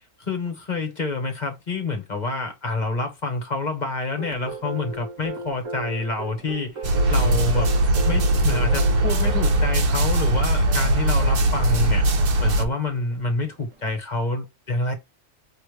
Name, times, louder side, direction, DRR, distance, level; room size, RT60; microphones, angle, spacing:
voice 1, 0.3-7.7 8.0-12.1 12.4-14.9, left 3 dB, 35° left, 1.2 m, -28 dB
sound 1, 4.2-14.0, right 2 dB, 70° right, 1.7 m, -37 dB
sound 2, 6.8-12.6, right 1 dB, 50° right, 0.9 m, -20 dB
5.0 x 3.3 x 3.2 m
omnidirectional pair, 1.4 m